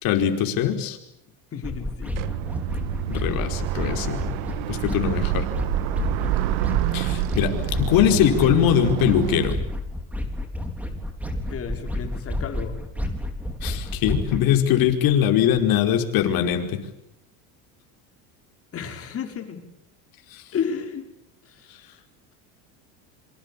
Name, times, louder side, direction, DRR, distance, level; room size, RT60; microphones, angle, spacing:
voice 1, 0.0-1.0 3.1-4.2 4.7-5.5 6.9-7.5 7.8-9.6 13.6-16.8, left 10 dB, 55° left, 4 dB, 5.0 m, -21 dB
voice 2, 1.5-2.2 7.3-7.8 11.5-12.8 18.7-19.6 20.5-21.1 21.5-21.7, left 7 dB, 30° left, 4 dB, 5.3 m, -32 dB
sound 1, 1.6-14.4, left 1 dB, 5° right, 3.9 m, -31 dB
sound 2, 2.1-9.5, right 15 dB, 70° right, 1.6 m, -27 dB
27.0 x 25.0 x 8.5 m, 0.83 s
supercardioid pair, 135°, 42 cm